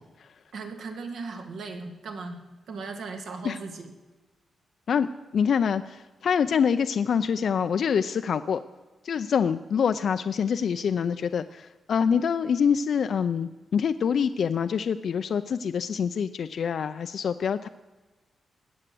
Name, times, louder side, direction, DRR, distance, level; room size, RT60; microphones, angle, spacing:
voice 1, 0.5-2.4 2.7-3.9, right 4 dB, 75° right, 4 dB, 2.3 m, -37 dB
voice 2, 5.3-8.6 9.0-17.7, left 7 dB, 60° left, 10 dB, 0.5 m, -25 dB
20.0 x 8.0 x 7.7 m, 1.2 s
wide cardioid pair, 140°, 0 cm